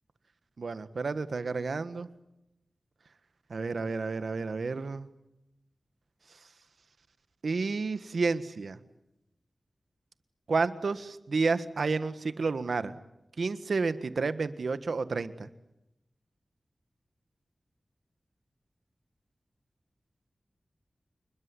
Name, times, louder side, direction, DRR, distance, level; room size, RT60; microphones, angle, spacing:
voice 1, 0.6-2.1 3.5-5.1 7.4-8.8 10.5-12.9 13.4-15.5, right 4 dB, 75° right, 12 dB, 1.5 m, -30 dB
28.5 x 21.0 x 9.8 m, 0.90 s
wide cardioid pair, 75°, 0 cm